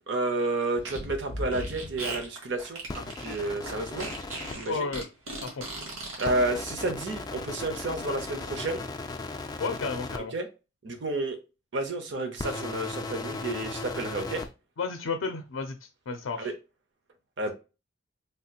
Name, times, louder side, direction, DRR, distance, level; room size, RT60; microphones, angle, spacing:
voice 1, 0.1-4.1 4.5-4.9 6.2-8.8 10.3-10.5 10.8-11.4 11.7-14.4 16.4-16.5 17.4-17.5, right 2 dB, 60° right, 0.7 m, -31 dB
Fart, 0.8-6.3, right 1 dB, 85° right, 1.3 m, -37 dB
sound 1, 2.9-4.6 6.2-10.2 12.3-14.5, left 3 dB, 20° left, 0.3 m, -37 dB
voice 2, 4.7-5.1 5.4-5.6 9.6-10.3 14.8-16.5, left 4 dB, 80° left, 0.4 m, -32 dB
3.3 x 2.8 x 2.3 m
head